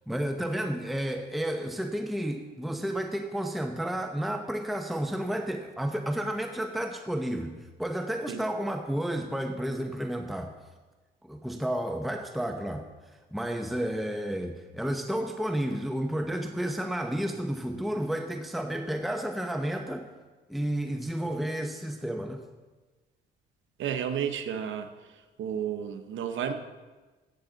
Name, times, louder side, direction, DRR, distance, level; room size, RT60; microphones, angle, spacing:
voice 1, 0.1-10.5 11.2-12.9 13.3-20.1 20.5-22.4, right 1 dB, ahead, 5 dB, 0.8 m, -31 dB
voice 2, 23.8-24.9 25.4-26.5, right 8 dB, 75° right, 8 dB, 1.0 m, -32 dB
14.0 x 8.6 x 4.0 m, 1.3 s
cardioid pair, 90°, 20 cm